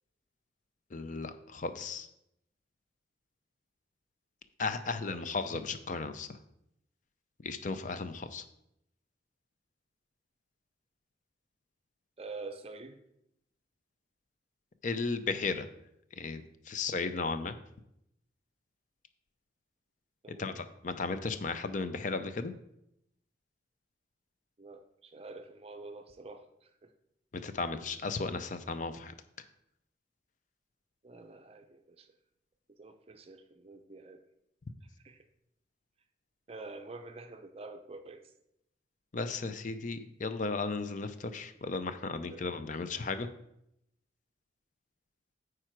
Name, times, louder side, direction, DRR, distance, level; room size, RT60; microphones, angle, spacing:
voice 1, 0.9-2.1 4.6-6.4 7.4-8.4 14.8-15.7 16.2-17.6 20.3-22.5 27.3-29.1 39.1-43.3, left 4 dB, 40° left, 0.5 m, -35 dB
voice 2, 12.2-13.0 20.2-20.6 24.6-26.4 26.8-26.9 31.0-32.1 32.8-34.2 35.0-35.2 36.5-38.2 42.3-42.4, right 3 dB, 30° right, 0.6 m, -47 dB
9.1 x 4.9 x 4.5 m
head